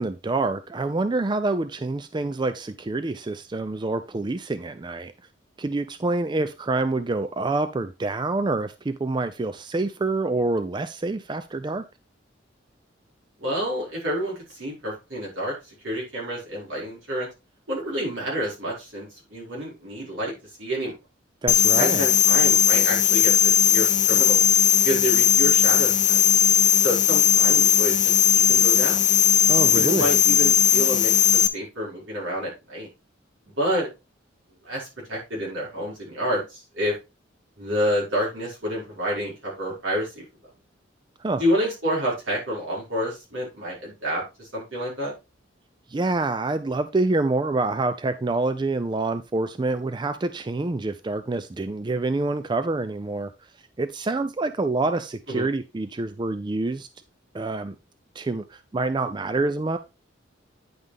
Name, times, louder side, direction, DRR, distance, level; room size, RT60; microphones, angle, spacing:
voice 1, 0.0-5.1 5.6-11.8 21.4-22.1 29.5-30.1 41.2-41.4 45.9-53.3 53.8-56.9 57.3-57.7 58.1-59.8, right 2 dB, 25° right, 0.4 m, -26 dB
voice 2, 13.4-17.3 17.7-20.3 20.6-20.9 21.7-24.5 24.8-26.2 26.8-29.0 29.8-32.9 33.5-33.9 34.6-36.9 37.6-40.2 41.4-45.1 55.3-55.5, equal, 80° right, 5.4 m, -29 dB
sound 1, 21.5-31.5, left 8 dB, 40° left, 0.6 m, -18 dB
9.5 x 5.5 x 3.4 m
head